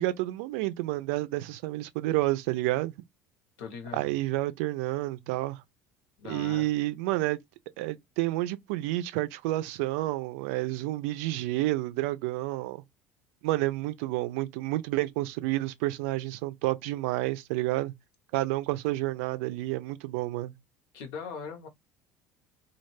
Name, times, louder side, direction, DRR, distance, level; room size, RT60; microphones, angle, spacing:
voice 1, 0.0-2.9 3.9-5.6 6.3-7.4 7.8-12.8 13.4-17.9 18.3-20.5, right 17 dB, 70° right, 0.4 m, -30 dB
voice 2, 3.6-4.1 6.2-6.7 20.9-21.7, left 5 dB, 65° left, 0.9 m, -40 dB
2.3 x 2.1 x 3.2 m
hypercardioid pair, 65°, 8 cm